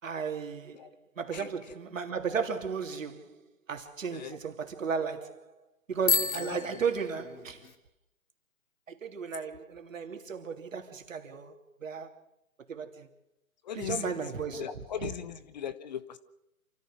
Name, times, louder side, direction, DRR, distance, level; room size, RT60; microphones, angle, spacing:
voice 1, 0.0-0.9 1.2-3.4 3.7-5.5 5.9-7.7 8.9-11.5 11.8-12.1 12.7-13.1 13.7-15.1, right 6 dB, 60° right, 3.2 m, -35 dB
Bicycle bell, 6.0-7.7, left 5 dB, 70° left, 3.1 m, -31 dB
voice 2, 13.6-14.1 14.5-16.2, left 9 dB, 30° left, 0.9 m, -38 dB
28.0 x 14.5 x 6.4 m
figure-of-eight pair, 140°, 43 cm